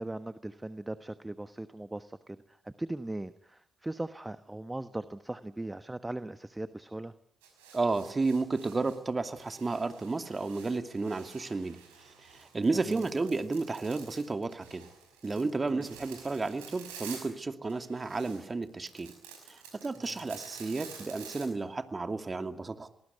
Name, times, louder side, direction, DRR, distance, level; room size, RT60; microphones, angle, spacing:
voice 1, 0.0-7.1 12.8-13.1 15.7-15.9, right 1 dB, 15° right, 12 dB, 1.2 m, -39 dB
sound 1, 7.4-9.0 9.3-17.4 17.7-21.5, right 7 dB, 85° right, 5.6 m, -50 dB
voice 2, 7.7-11.8 12.2-14.9 15.2-19.1 19.5-22.9, right 3 dB, 30° right, 8 dB, 2.6 m, -32 dB
26.0 x 19.5 x 9.6 m, 0.68 s
hypercardioid pair, 45°, 0 cm